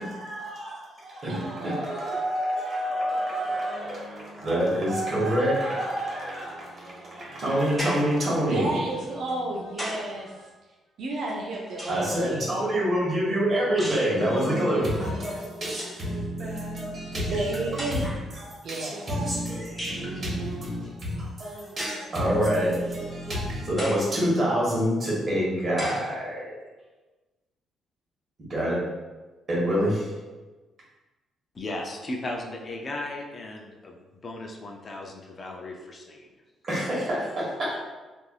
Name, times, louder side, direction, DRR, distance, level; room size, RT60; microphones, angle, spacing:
voice 1, 0.0-0.7 1.2-8.8 11.9-26.5 28.5-28.8 29.5-30.1 36.6-37.8, equal, 45° right, -5 dB, 1.1 m, -27 dB
voice 2, 1.3-1.8 8.5-10.3 11.0-12.6 15.0-15.3 17.2-18.1 18.6-19.0 19.9-20.7, right 2 dB, 65° right, -1 dB, 0.4 m, -32 dB
sound 1, 7.8-8.2 9.3-10.2 11.3-12.2 13.8-14.2 15.3-15.4 15.7-16.0 17.0-17.1 17.8-18.3 19.8-20.1 21.8-22.1 22.8-22.9 23.8-24.1 24.8-24.9 25.8-26.1, equal, 10° left, 0.9 m, -36 dB
voice 3, 31.5-34.0 34.2-36.3, left 2 dB, 40° left, 1 dB, 0.4 m, -36 dB
3.2 x 2.5 x 2.3 m, 1.2 s
cardioid pair, 90°, 0 cm